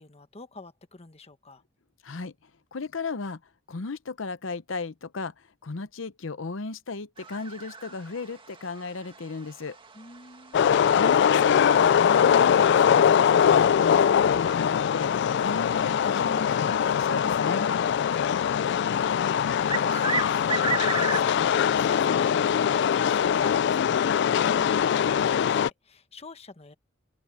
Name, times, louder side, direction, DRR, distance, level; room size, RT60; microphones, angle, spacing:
voice 1, 0.0-1.6 9.9-10.6 18.3-26.7, left 3 dB, 30° left, 1.3 m, -46 dB
voice 2, 2.0-3.4 3.7-9.8 10.9-15.1 15.4-17.7, left 4 dB, 80° left, 0.8 m, -35 dB
sound 1, 7.2-23.1, right 5 dB, 25° right, 2.0 m, -38 dB
sound 2, 10.5-25.7, left 8 dB, 60° left, 0.3 m, -22 dB
open air
head